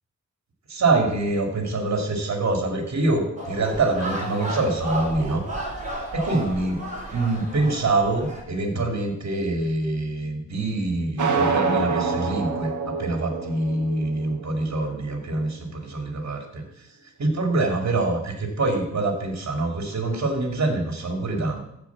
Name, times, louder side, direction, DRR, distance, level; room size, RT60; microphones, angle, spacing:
voice 1, 0.7-5.4 6.1-6.8 7.1-16.6 17.2-21.6, right 2 dB, 65° right, 3 dB, 2.6 m, -25 dB
sound 1, 3.4-8.4, right 1 dB, 25° right, 4.3 m, -33 dB
sound 2, 11.2-15.2, right 4 dB, 85° right, 1.4 m, -26 dB
14.5 x 5.1 x 7.1 m, 0.80 s
wide cardioid pair, 85°, 29 cm